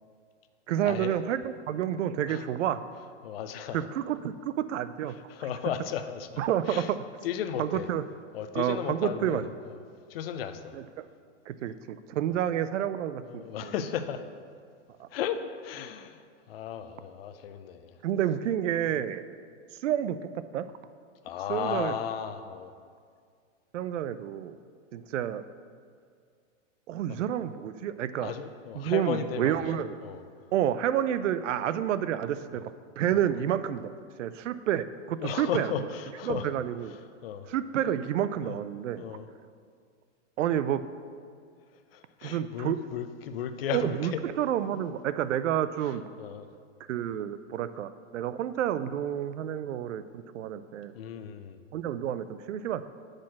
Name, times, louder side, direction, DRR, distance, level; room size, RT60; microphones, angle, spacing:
voice 1, 0.7-2.8 3.7-5.2 5.4-5.7 6.4-7.0 7.6-8.0 8.5-9.5 10.7-10.9 11.5-13.9 15.0-15.1 18.0-19.2 19.8-20.7 21.5-22.0 23.7-24.6 24.9-25.4 26.9-28.3 28.7-30.0 30.5-33.9 34.2-35.9 36.2-36.9 37.5-39.2 40.4-40.8 42.2-42.8 43.7-46.0 46.9-50.9 51.7-52.8, right 10 dB, 75° right, 13 dB, 0.5 m, -29 dB
voice 2, 3.2-3.9 5.1-6.4 6.7-6.9 7.2-7.9 8.3-9.7 10.1-10.8 13.2-14.2 15.1-17.9 18.9-19.0 21.2-22.7 28.2-30.2 32.5-32.6 33.1-33.2 35.2-36.5 36.9-37.0 37.2-37.5 38.4-38.6 39.0-39.3 41.9-44.2 45.8-46.5 50.9-51.6, left 8 dB, 50° left, 9 dB, 0.5 m, -35 dB
6.3 x 4.2 x 6.2 m, 2.1 s
hypercardioid pair, 145°, 37 cm